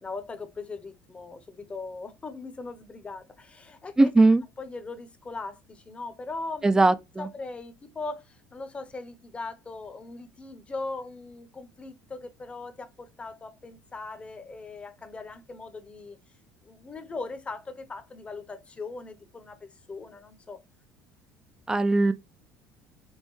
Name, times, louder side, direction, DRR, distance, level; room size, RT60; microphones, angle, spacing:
voice 1, 0.0-4.1 4.6-16.2 16.6-20.6, left 3 dB, 20° left, 0.7 m, -39 dB
voice 2, 4.0-4.4 6.6-6.9 21.7-22.1, right 2 dB, 10° right, 0.4 m, -18 dB
5.4 x 2.1 x 3.1 m
supercardioid pair, 110°, 6 cm